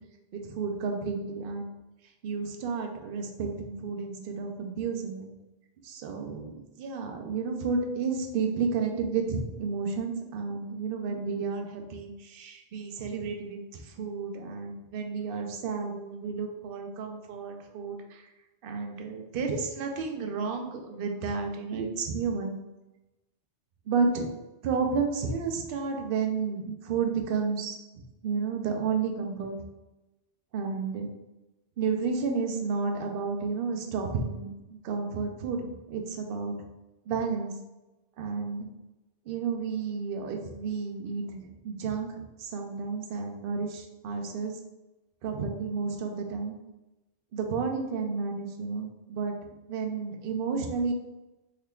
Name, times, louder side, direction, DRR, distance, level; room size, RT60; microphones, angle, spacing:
voice 1, 0.3-1.7 2.2-5.3 5.8-18.3 18.6-22.6 23.9-24.4 24.6-27.8 28.2-29.6 30.5-31.1 31.8-36.5 37.1-37.5 38.2-38.7 39.3-44.5 45.2-46.6 47.3-49.3 49.7-50.9, right 5 dB, 60° right, 3 dB, 0.7 m, -31 dB
3.6 x 3.3 x 2.3 m, 1.0 s
omnidirectional pair, 1.2 m